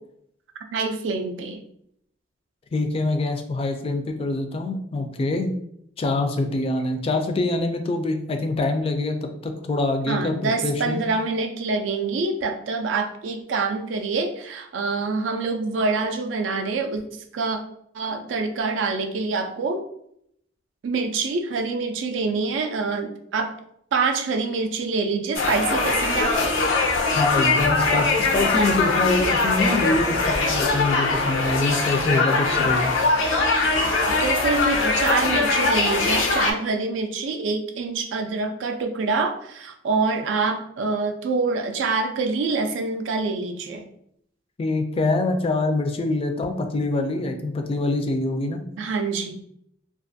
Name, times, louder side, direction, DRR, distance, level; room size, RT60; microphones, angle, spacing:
voice 1, 0.7-1.6 10.1-17.0 17.3-17.6 17.9-19.8 20.8-23.5 23.9-26.6 32.6-32.7 34.2-43.9 48.8-49.4, right 4 dB, 75° right, 6 dB, 0.4 m, -26 dB
voice 2, 2.7-5.5 6.0-11.0 27.1-32.9 44.6-48.6, left 2 dB, 30° left, 5 dB, 0.3 m, -25 dB
sound 1, 25.3-36.5, left 3 dB, 90° left, 0.5 m, -21 dB
2.4 x 2.4 x 2.5 m, 0.71 s
head